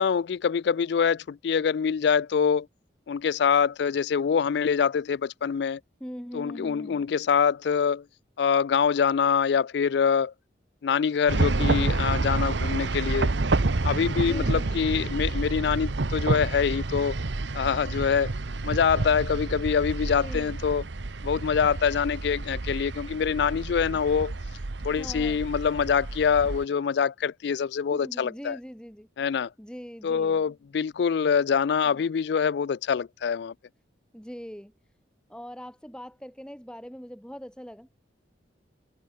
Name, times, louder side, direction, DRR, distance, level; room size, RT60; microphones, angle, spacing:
voice 1, 0.0-2.7 3.1-5.8 6.3-8.0 8.4-10.3 10.8-13.3 13.8-17.2 17.5-18.3 18.6-20.8 21.2-24.3 24.8-28.6 29.2-29.5 30.0-33.5, left 6 dB, 65° left, 0.3 m, -25 dB
voice 2, 6.0-7.1 14.2-14.9 20.2-20.6 25.0-25.4 27.9-29.1 29.6-30.4 34.1-34.7 35.3-38.0, equal, 5° left, 2.9 m, -41 dB
sound 1, 11.3-26.6, right 2 dB, 80° right, 1.0 m, -29 dB
head